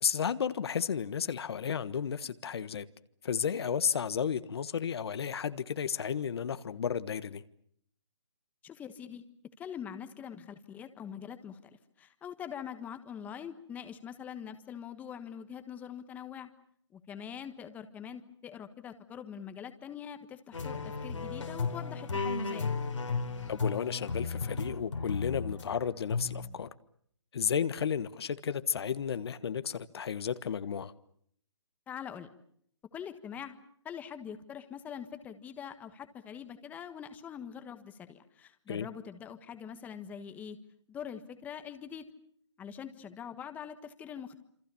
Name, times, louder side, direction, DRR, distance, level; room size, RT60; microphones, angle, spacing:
voice 1, 0.0-2.8 3.2-7.4 23.5-26.7 27.3-30.9 38.7-38.9, left 7 dB, 55° left, 1.4 m, -33 dB
voice 2, 8.6-9.2 9.6-16.5 16.9-22.7 31.9-32.3 32.9-33.5 33.8-40.6 40.9-42.0 42.6-44.4, left 8 dB, 10° left, 1.4 m, -44 dB
sound 1, 20.5-25.7 26.1-26.5, left 4 dB, 90° left, 4.2 m, -34 dB
28.0 x 25.5 x 7.0 m
hypercardioid pair, 155°, 15 cm